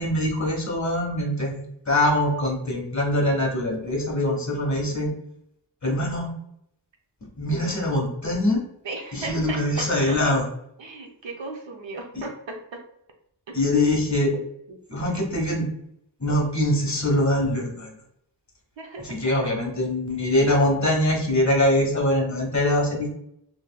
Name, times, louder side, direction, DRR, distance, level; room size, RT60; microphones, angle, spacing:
voice 1, 0.0-5.1 5.8-6.3 7.4-8.6 9.1-10.4 13.5-14.3 14.9-15.7 16.2-17.9 19.0-23.1, left 1 dB, 35° left, -1 dB, 1.3 m, -23 dB
voice 2, 4.7-5.1 8.8-10.2 10.8-12.8 13.5-13.6 14.7-14.8 18.8-19.5, right 3 dB, 70° right, 2 dB, 0.8 m, -37 dB
3.3 x 2.9 x 2.2 m, 0.74 s
wide cardioid pair, 65°, 46 cm